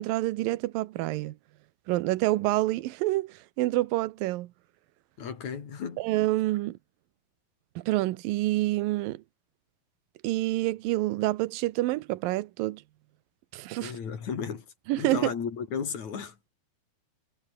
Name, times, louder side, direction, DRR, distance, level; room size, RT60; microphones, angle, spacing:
voice 1, 0.0-1.4 1.9-4.5 6.0-6.8 7.8-9.2 10.2-12.8 13.5-13.9 14.9-15.3, right 17 dB, 75° right, 2.4 m, -27 dB
voice 2, 5.2-6.0 13.8-14.7 15.0-16.3, left 6 dB, 50° left, 4.2 m, -34 dB
omnidirectional pair, 4.4 m